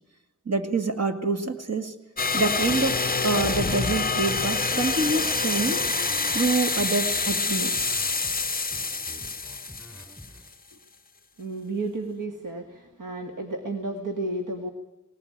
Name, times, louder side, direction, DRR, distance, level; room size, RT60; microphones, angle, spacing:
voice 1, 0.5-1.9 2.3-5.8 6.3-8.1, right 3 dB, 55° right, 6 dB, 2.1 m, -26 dB
sound 1, 2.2-10.5, left 4 dB, 30° left, 0.7 m, -27 dB
sound 2, 2.9-10.4, left 1 dB, ahead, 5.7 m, -46 dB
voice 2, 11.4-14.7, right 2 dB, 85° right, 3 dB, 1.9 m, -32 dB
19.5 x 19.0 x 8.7 m, 0.99 s
wide cardioid pair, 85°, 31 cm